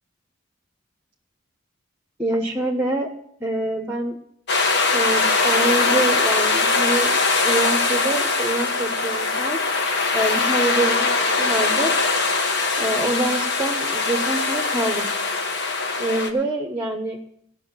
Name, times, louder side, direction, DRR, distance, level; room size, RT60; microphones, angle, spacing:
voice 1, 2.2-3.1 3.4-4.2 4.9-9.6 10.1-11.9 12.8-15.1 16.0-17.2, right 2 dB, 10° right, 3 dB, 1.0 m, -25 dB
sound 1, 4.5-16.3, left 3 dB, 55° left, 1.4 m, -21 dB
16.0 x 6.0 x 8.7 m, 0.72 s
head